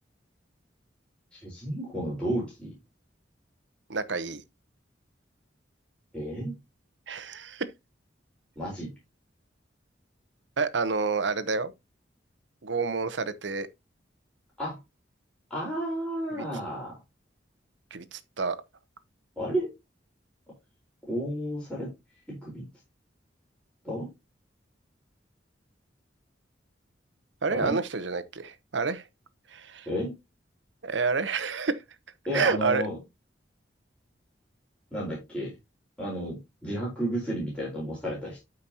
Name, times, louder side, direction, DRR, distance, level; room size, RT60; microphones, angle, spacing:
voice 1, 1.3-2.7 6.1-6.6 8.6-8.9 14.6-14.8 15.5-17.0 19.4-19.7 21.1-21.9 22.3-22.7 23.8-24.1 27.5-27.8 29.9-30.1 32.3-33.0 34.9-35.5 36.0-38.4, equal, 5° left, 4.2 m, -32 dB
voice 2, 3.9-4.4 7.1-7.7 10.6-11.7 12.6-13.7 16.3-16.4 17.9-18.6 27.4-29.1 29.5-29.9 30.8-31.8 32.3-32.8, right 4 dB, 75° right, 0.9 m, -29 dB
12.5 x 5.2 x 2.8 m
head